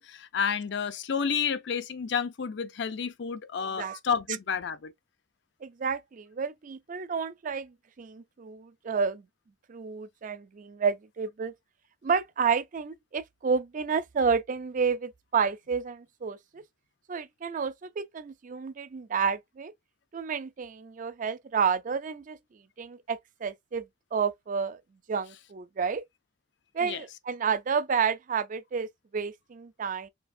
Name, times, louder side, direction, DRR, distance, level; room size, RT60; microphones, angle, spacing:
voice 1, 0.0-4.9 26.8-27.0, left 6 dB, 65° left, 0.5 m, -30 dB
voice 2, 5.6-9.2 9.7-11.5 12.0-16.6 17.1-19.7 20.1-22.4 22.8-23.8 24.1-24.8 25.1-26.0 26.7-28.9 29.1-30.1, right 6 dB, 45° right, 0.4 m, -30 dB
4.4 x 3.2 x 2.6 m
head